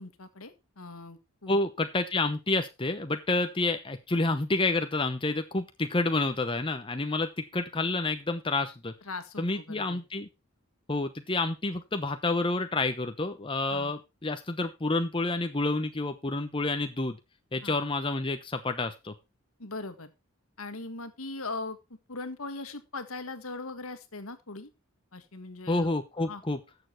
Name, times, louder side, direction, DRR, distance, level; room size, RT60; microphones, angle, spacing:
voice 1, 0.0-1.6 9.0-10.0 13.7-13.9 17.6-17.8 19.6-20.1 20.6-24.7 25.1-25.9 26.3-26.4, left 3 dB, 80° left, 10 dB, 1.7 m, -40 dB
voice 2, 1.5-8.9 9.4-10.3 10.9-17.2 17.5-19.1 25.7-26.6, left 2 dB, 25° left, 7 dB, 0.8 m, -29 dB
13.0 x 7.0 x 4.4 m, 0.25 s
head